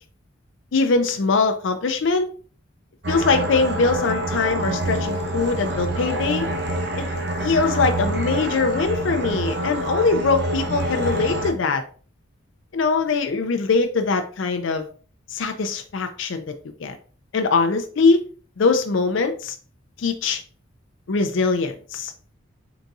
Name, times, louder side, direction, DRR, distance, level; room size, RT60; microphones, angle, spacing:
voice 1, 0.7-2.3 3.1-6.5 7.0-7.1 7.4-11.8 12.7-14.9 15.3-16.5 16.8-17.0 17.3-18.2 18.6-19.6 20.0-20.4 21.1-22.1, left 4 dB, 70° left, 6 dB, 0.5 m, -22 dB
sound 1, 3.0-11.5, right 1 dB, 55° right, 0.8 m, -26 dB
4.0 x 3.6 x 2.6 m, 0.40 s
head